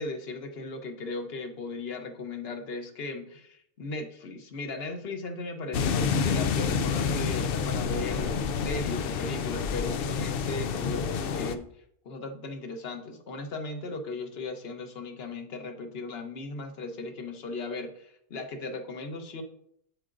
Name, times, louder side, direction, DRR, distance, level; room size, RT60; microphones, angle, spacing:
voice 1, 0.0-11.7 12.0-19.4, left 3 dB, 50° left, 6 dB, 1.0 m, -37 dB
sound 1, 5.7-11.6, left 6 dB, 85° left, 0.5 m, -28 dB
8.7 x 7.7 x 2.5 m, 0.71 s
omnidirectional pair, 1.5 m